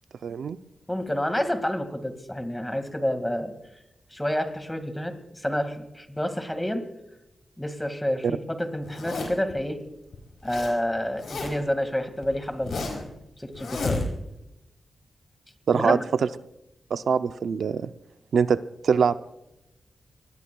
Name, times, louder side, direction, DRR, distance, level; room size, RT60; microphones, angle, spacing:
voice 1, 0.2-0.6 8.2-8.4 15.7-16.0 16.9-17.9 18.3-18.6 18.8-19.2, right 6 dB, 85° right, 11 dB, 0.5 m, -23 dB
voice 2, 0.9-3.5 4.1-6.8 7.6-9.8 10.4-14.1 15.7-16.0, equal, 10° left, 8 dB, 2.0 m, -29 dB
Zipper (clothing), 8.8-9.5 10.1-10.7 11.0-11.7 12.2-13.1 13.5-14.4, left 3 dB, 85° left, 4.6 m, -32 dB
26.5 x 21.0 x 2.3 m, 0.88 s
wide cardioid pair, 105°, 0 cm